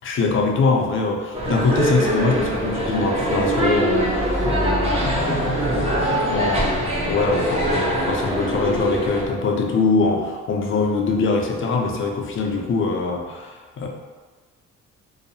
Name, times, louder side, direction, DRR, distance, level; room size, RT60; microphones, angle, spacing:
voice 1, 0.0-13.9, left 4 dB, 45° left, 1 dB, 0.5 m, -23 dB
sound 1, 1.3-9.3, right 1 dB, 20° right, 0.6 m, -23 dB
2.7 x 2.0 x 2.7 m, 1.4 s
cardioid pair, 90°, 30 cm